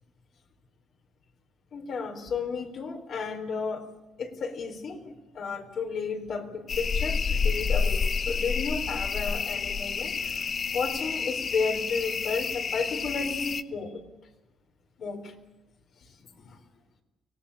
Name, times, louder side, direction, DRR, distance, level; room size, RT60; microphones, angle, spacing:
voice 1, 1.7-3.9 4.2-14.0 15.0-15.3 16.0-16.6, left 5 dB, 60° left, 5 dB, 4.2 m, -33 dB
sound 1, 6.7-13.6, left 5 dB, 45° left, 1.0 m, -29 dB
24.5 x 18.0 x 8.7 m, 1.0 s
cardioid pair, 90°, 0 cm